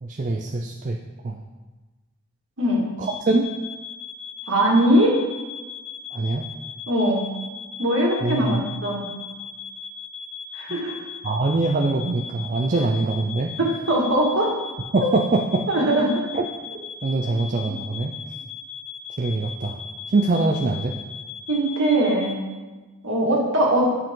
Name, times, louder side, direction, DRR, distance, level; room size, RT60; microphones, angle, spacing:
voice 1, 0.0-1.0 1.2-1.4 3.0-3.5 6.1-6.5 8.2-8.6 10.7-10.8 11.2-13.5 14.9-15.7 16.3-16.5 17.0-18.1 19.2-19.8 20.1-21.0, right 2 dB, 35° right, 1 dB, 0.4 m, -23 dB
sound 1, 3.0-22.3, left 6 dB, 30° left, 2.0 m, -38 dB
voice 2, 4.5-5.2 6.9-7.2 7.8-9.0 10.5-10.9 13.6-14.5 15.7-16.1 21.5-22.4 23.0-23.9, right 1 dB, 60° right, -2 dB, 1.9 m, -20 dB
10.5 x 4.8 x 3.7 m, 1.3 s
head